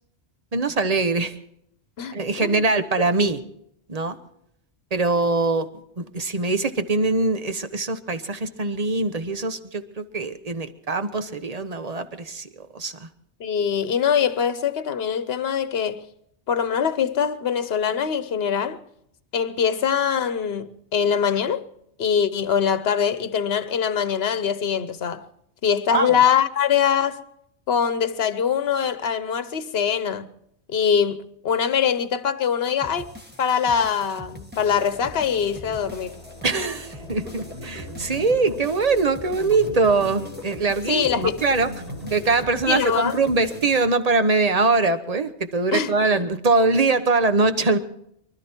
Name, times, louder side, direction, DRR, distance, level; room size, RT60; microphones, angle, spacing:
voice 1, 0.5-1.3 2.1-3.4 3.9-4.2 4.9-5.7 6.0-13.1 25.9-26.1 36.4-41.7 42.1-47.8, right 3 dB, 35° right, 1.2 m, -22 dB
voice 2, 2.0-2.6 13.4-16.0 16.5-18.8 19.3-21.6 22.0-25.2 25.6-27.2 27.7-30.3 30.7-33.1 33.4-36.2 40.9-41.4 42.7-43.1 45.7-46.3, left 7 dB, 65° left, 1.2 m, -23 dB
sound 1, 32.8-43.8, equal, 10° right, 1.8 m, -44 dB
sound 2, 34.6-43.9, left 3 dB, 30° left, 1.8 m, -43 dB
sound 3, 37.0-43.7, right 1 dB, 55° right, 6.8 m, -40 dB
24.5 x 13.0 x 4.5 m
omnidirectional pair, 1.1 m